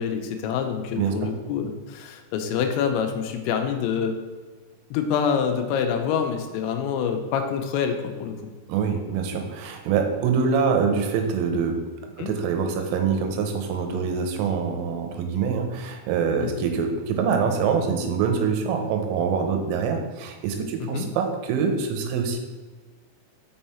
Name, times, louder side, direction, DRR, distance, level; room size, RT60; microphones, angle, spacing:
voice 1, 0.0-4.2 4.9-8.4 12.2-12.3 16.4-16.7 20.8-21.1, left 7 dB, 85° left, 5 dB, 2.7 m, -26 dB
voice 2, 8.7-11.8 12.0-22.4, right 6 dB, 90° right, 4 dB, 3.4 m, -25 dB
6.6 x 5.5 x 4.3 m, 1.3 s
omnidirectional pair, 5.7 m